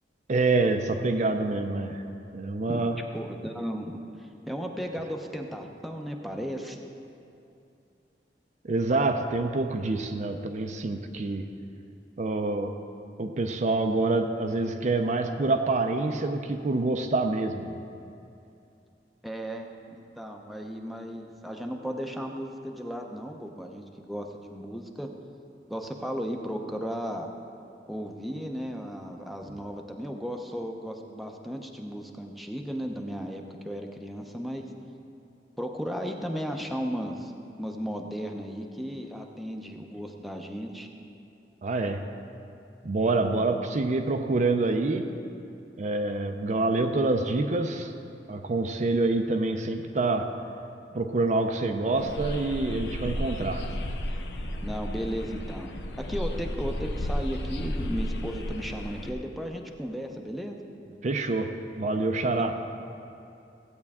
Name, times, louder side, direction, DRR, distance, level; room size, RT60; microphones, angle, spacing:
voice 1, 0.3-2.0 2.3-3.0 8.6-11.5 12.2-12.7 13.2-17.8 41.6-42.0 42.8-45.1 45.8-47.9 48.3-50.3 50.9-53.6 61.0-61.5 61.8-62.6, right 3 dB, 40° right, 5 dB, 0.5 m, -26 dB
voice 2, 3.1-6.8 19.2-25.1 25.7-27.3 27.9-34.6 35.6-37.3 37.6-40.9 54.6-55.7 56.0-60.6 62.4-62.5, equal, ahead, 2 dB, 0.6 m, -35 dB
sound 1, 52.0-59.1, left 1 dB, 70° left, 0.7 m, -33 dB
15.5 x 8.6 x 3.6 m, 2.6 s
head